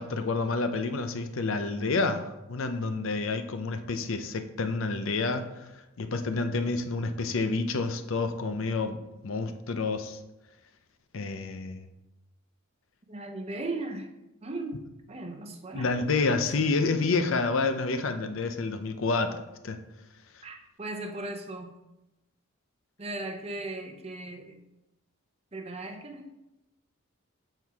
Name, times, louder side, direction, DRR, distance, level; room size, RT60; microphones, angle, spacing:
voice 1, 0.0-5.7 6.0-9.0 9.2-10.2 11.1-11.8 15.7-19.4 19.6-19.8, left 3 dB, 65° left, 8 dB, 0.5 m, -29 dB
voice 2, 13.1-14.1 14.4-14.8 15.1-15.9 16.2-16.4 20.4-21.7 23.0-24.6 25.5-26.3, right 2 dB, 30° right, 4 dB, 0.6 m, -37 dB
7.6 x 4.5 x 3.5 m, 0.95 s
head